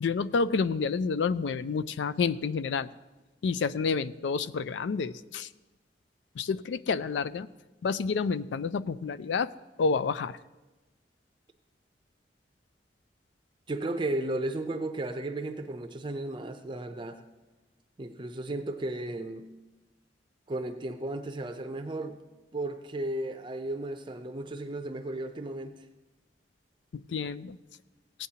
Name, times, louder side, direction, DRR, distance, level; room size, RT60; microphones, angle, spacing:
voice 1, 0.0-2.9 3.4-5.5 6.4-7.5 7.8-9.5 9.8-10.4 26.9-27.6, left 5 dB, 85° left, 16 dB, 0.4 m, -29 dB
voice 2, 13.7-17.2 18.0-19.5 20.5-22.2 22.5-25.8, right 2 dB, 25° right, 7 dB, 0.5 m, -34 dB
16.5 x 9.1 x 2.8 m, 1.1 s
head